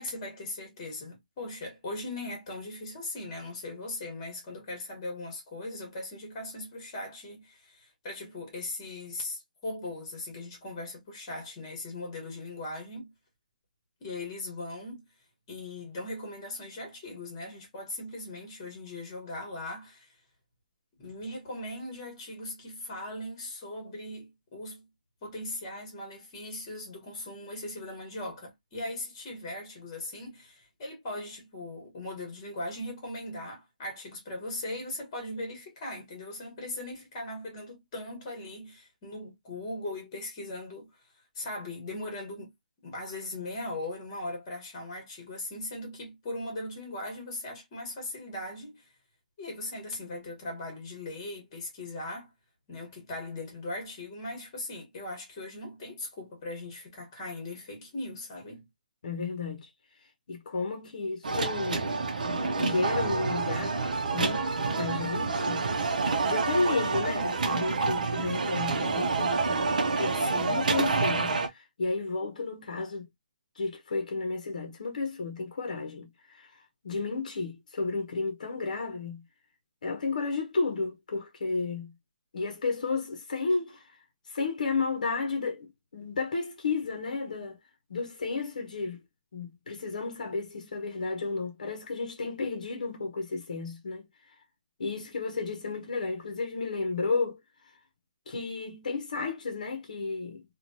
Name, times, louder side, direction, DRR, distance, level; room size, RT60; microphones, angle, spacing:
voice 1, 0.0-13.1 14.0-15.0 15.5-20.1 21.0-24.8 25.2-40.9 41.3-42.5 42.8-48.9 49.4-52.3 52.7-58.6 70.3-70.7, left 2 dB, 25° left, 1.3 m, -39 dB
voice 2, 59.0-59.7 60.3-61.9 62.6-63.8 64.1-65.7 66.3-69.6 69.9-70.2 70.4-73.0 73.6-79.2 79.8-81.9 82.3-84.0 84.3-87.6 87.9-89.0 89.3-94.3 94.8-97.4 98.3-100.4, left 4 dB, 60° left, 0.8 m, -32 dB
sound 1, 61.2-71.5, right 4 dB, 65° right, 0.6 m, -28 dB
3.0 x 2.3 x 2.6 m
hypercardioid pair, 175°, 5 cm